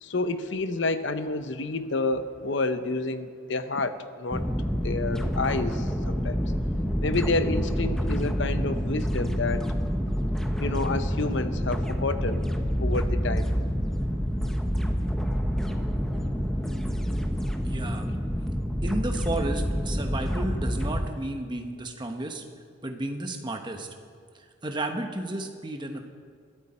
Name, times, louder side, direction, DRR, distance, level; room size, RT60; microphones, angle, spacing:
voice 1, 0.0-4.4 4.8-6.5 7.0-9.6 10.6-12.4 12.8-13.5, left 3 dB, 60° left, 10 dB, 0.8 m, -29 dB
sound 1, 4.3-21.1, equal, ahead, 0.8 m, -28 dB
voice 2, 17.6-18.1 18.8-22.4 22.8-23.9 24.3-26.0, right 1 dB, 20° right, 4 dB, 1.1 m, -33 dB
21.5 x 12.5 x 4.3 m, 2.1 s
head